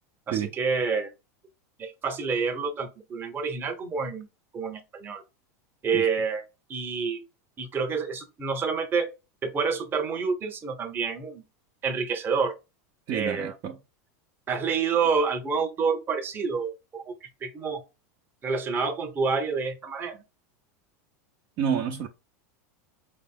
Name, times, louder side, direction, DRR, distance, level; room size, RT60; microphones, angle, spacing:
voice 1, 0.3-1.1 1.8-4.3 4.5-5.2 5.8-6.4 6.7-7.2 7.6-9.1 9.4-11.4 11.8-12.5 13.1-13.5 14.5-17.8 18.4-20.2, right 5 dB, 25° right, 0.9 m, -28 dB
voice 2, 13.1-13.8 21.6-22.1, right 8 dB, 45° right, 0.6 m, -28 dB
5.1 x 2.0 x 3.6 m
supercardioid pair, 135°, 9 cm